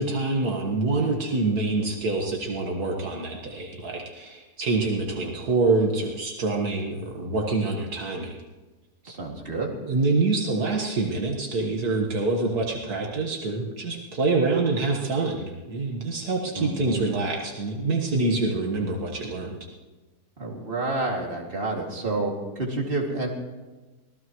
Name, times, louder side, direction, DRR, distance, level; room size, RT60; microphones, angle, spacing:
voice 1, 0.0-8.3 9.8-19.6, right 3 dB, 75° right, 0 dB, 2.0 m, -26 dB
voice 2, 9.0-9.7 16.5-17.0 20.4-23.3, right 2 dB, 35° right, -1 dB, 2.6 m, -29 dB
25.0 x 18.0 x 3.1 m, 1.2 s
omnidirectional pair, 1.7 m